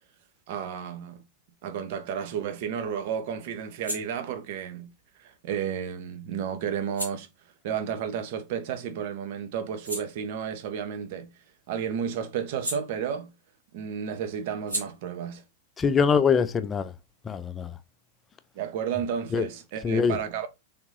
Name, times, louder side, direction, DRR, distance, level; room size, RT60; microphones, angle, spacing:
voice 1, 0.5-1.2 1.6-4.9 5.2-7.3 7.6-11.3 11.7-13.3 13.7-15.4 18.5-20.5, right 8 dB, 50° right, 0.8 m, -32 dB
sound 1, 3.7-8.9 9.3-13.6 13.8-17.2, right 1 dB, 90° right, 1.6 m, -42 dB
voice 2, 15.8-16.9 17.3-17.7 19.3-19.4 19.8-20.2, left 6 dB, 20° left, 0.4 m, -23 dB
3.5 x 3.5 x 3.1 m
figure-of-eight pair, 90°, 0 cm